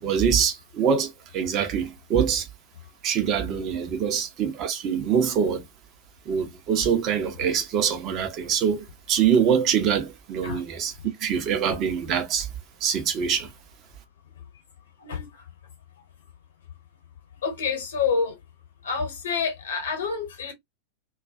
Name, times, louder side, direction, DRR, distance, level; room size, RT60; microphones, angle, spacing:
voice 1, 0.0-2.5 3.0-5.6 6.3-12.5 12.8-13.5, right 7 dB, 35° right, 0.6 m, -24 dB
voice 2, 17.4-18.4 18.8-20.5, left 5 dB, 65° left, 0.9 m, -27 dB
2.3 x 2.2 x 2.4 m
figure-of-eight pair, 90°, 0 cm